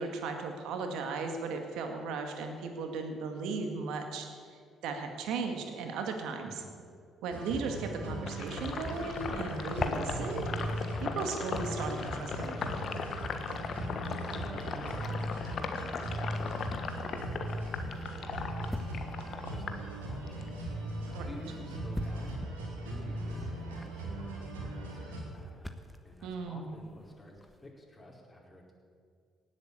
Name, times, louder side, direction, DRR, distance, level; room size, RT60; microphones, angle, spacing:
voice 1, 0.0-6.6 7.2-10.4 11.0-13.0 21.1-21.3 26.2-26.8, right 4 dB, 70° right, 5 dB, 2.0 m, -36 dB
sound 1, 7.3-25.2, right 1 dB, 85° right, 2.6 m, -38 dB
Sink (filling or washing), 8.3-20.5 20.9-22.3, left 5 dB, 55° left, 1.5 m, -38 dB
sound 2, 8.4-27.7, equal, 5° left, 1.4 m, -49 dB
voice 2, 13.9-18.8 19.2-20.5 21.0-22.5 22.8-25.7 26.0-28.7, left 1 dB, 20° left, -2 dB, 4.9 m, -51 dB
18.0 x 8.4 x 8.4 m, 2.2 s
hypercardioid pair, 50°, 0 cm